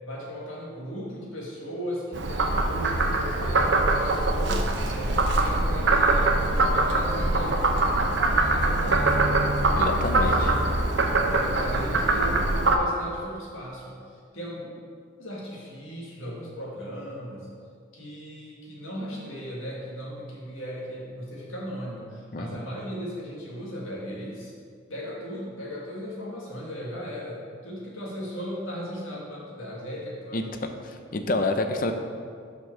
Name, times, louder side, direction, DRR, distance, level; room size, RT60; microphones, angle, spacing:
voice 1, 0.0-9.3 10.1-10.7 11.1-14.8 15.2-17.5 17.9-24.5 24.9-30.5, equal, 90° left, -4 dB, 2.0 m, -37 dB
Frog, 2.1-12.8, right 2 dB, 65° right, 0.7 m, -23 dB
voice 2, 9.8-10.5 22.3-22.6 30.3-30.4 30.9-31.9, left 2 dB, 45° left, 6 dB, 0.5 m, -27 dB
6.3 x 5.2 x 5.9 m, 2.2 s
head